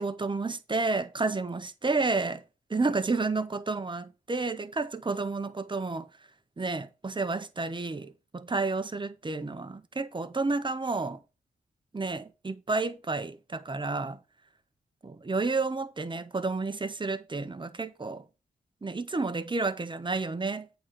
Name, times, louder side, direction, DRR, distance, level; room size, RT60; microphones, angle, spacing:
voice 1, 0.0-2.4 2.7-6.1 6.6-11.2 11.9-14.2 15.0-18.2 18.8-20.8, right 3 dB, 25° right, 1.0 m, -31 dB
8.4 x 4.0 x 6.0 m
cardioid pair, 70°, 18 cm